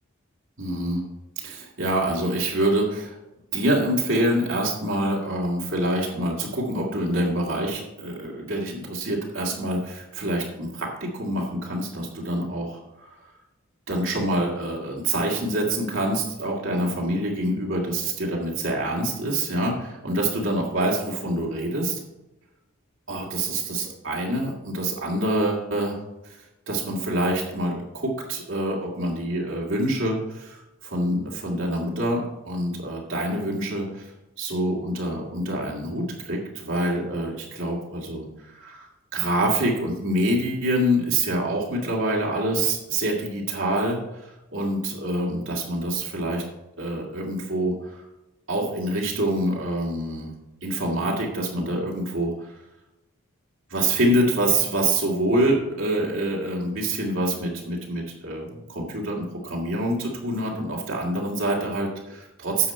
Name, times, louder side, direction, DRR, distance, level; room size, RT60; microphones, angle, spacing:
voice 1, 0.6-1.0 1.4-3.2 3.5-13.1 13.9-22.0 23.1-26.4 26.7-34.1 34.4-38.8 39.1-46.4 46.8-48.0 48.5-50.3 50.6-52.5 53.7-62.7, right 1 dB, 60° right, -3 dB, 2.2 m, -26 dB
9.7 x 7.3 x 4.3 m, 0.99 s
head